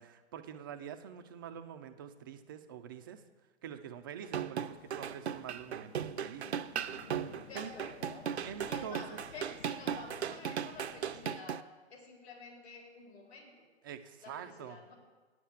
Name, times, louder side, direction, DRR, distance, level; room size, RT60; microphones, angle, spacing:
voice 1, 0.0-3.2 3.6-6.6 7.5-7.7 8.5-9.0 13.8-14.8, right 8 dB, 20° right, 7 dB, 0.4 m, -46 dB
sound 1, 4.2-11.6, right 8 dB, 65° right, 0.6 m, -37 dB
sound 2, 4.6-11.4, left 8 dB, 45° left, 0.6 m, -55 dB
voice 2, 7.4-8.3 8.6-11.6 11.9-13.7 14.2-14.9, left 3 dB, 65° left, -2 dB, 4.1 m, -50 dB
9.7 x 7.4 x 7.3 m, 1.3 s
figure-of-eight pair, 120°, 35 cm